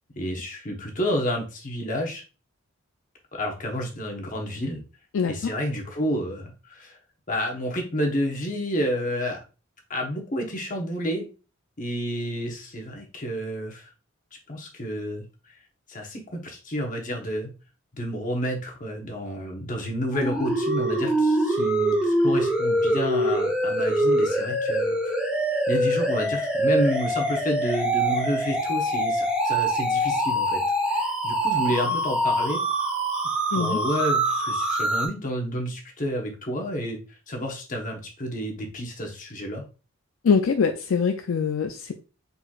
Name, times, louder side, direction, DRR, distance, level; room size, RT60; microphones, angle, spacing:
voice 1, 0.2-2.2 3.3-4.8 5.3-7.0 7.3-9.4 9.9-11.3 11.8-13.9 14.5-15.2 15.9-17.5 17.9-25.0 25.7-30.6 30.9-32.9 33.2-37.0 37.3-39.6, equal, 40° left, 1 dB, 1.1 m, -30 dB
voice 2, 5.1-5.5 33.5-33.8 40.2-41.9, left 6 dB, 70° left, 6 dB, 0.4 m, -23 dB
sound 1, 20.1-35.1, right 1 dB, 5° right, 1.0 m, -24 dB
4.4 x 4.0 x 2.4 m, 0.33 s
head